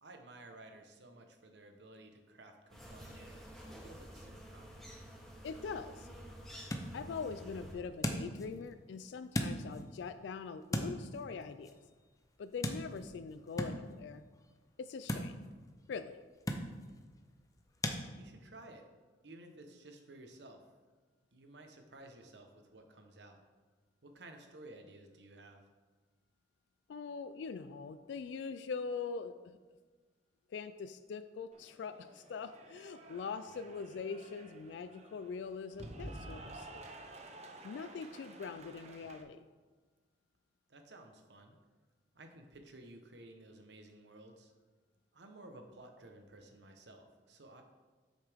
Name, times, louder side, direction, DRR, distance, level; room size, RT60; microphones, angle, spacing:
voice 1, 0.0-4.7 18.1-18.8 19.2-20.6 21.3-23.4 24.0-25.6 40.7-41.6 42.1-44.5 45.1-47.6, right 2 dB, 75° right, 5 dB, 1.0 m, -55 dB
sound 1, 2.7-7.7, equal, ahead, 2.0 m, -50 dB
voice 2, 5.4-6.1 6.9-11.8 12.4-14.2 14.8-15.4 15.9-16.2 26.9-29.6 30.5-36.8 37.6-39.5, left 5 dB, 80° left, 11 dB, 0.3 m, -43 dB
sound 2, 6.4-18.0, left 1 dB, 20° left, 0.6 m, -42 dB
Cheering / Applause, 31.5-39.2, right 2 dB, 40° right, 0.7 m, -51 dB
8.2 x 6.4 x 3.5 m, 1.4 s
head